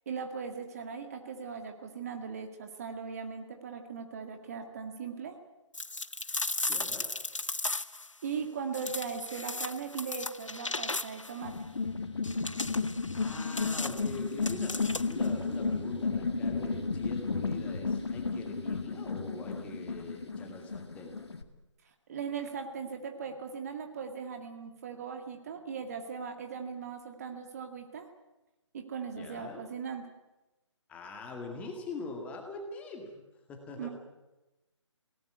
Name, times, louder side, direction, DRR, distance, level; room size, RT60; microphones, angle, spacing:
voice 1, 0.1-5.4 8.2-11.6 22.1-28.1 28.7-30.1 33.8-33.9, right 6 dB, 30° right, 5 dB, 1.9 m, -39 dB
sound 1, 5.7-8.1 8.7-11.4 12.2-15.3, left 2 dB, 85° left, 0.9 m, -36 dB
voice 2, 6.7-7.1 13.1-21.1 29.2-29.6 30.9-33.2 33.5-33.9, left 3 dB, 10° left, 3 dB, 2.1 m, -43 dB
sound 2, 11.4-21.4, left 4 dB, 60° left, 2.2 m, -33 dB
20.5 x 18.0 x 9.5 m, 1.0 s
figure-of-eight pair, 145°, 16 cm